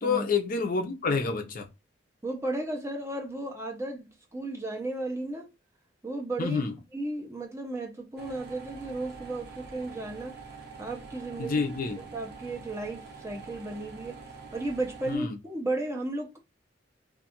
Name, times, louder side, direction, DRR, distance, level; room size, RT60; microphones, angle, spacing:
voice 1, 0.0-1.7 6.4-6.7 11.4-12.0 15.1-15.4, left 4 dB, 50° left, 0.5 m, -28 dB
voice 2, 2.2-5.5 6.0-6.6 6.9-10.4 10.8-11.6 12.0-14.2 14.5-16.4, right 2 dB, 15° right, 0.6 m, -34 dB
sound 1, 8.2-15.2, right 4 dB, 55° right, 0.7 m, -46 dB
2.5 x 2.3 x 2.8 m
head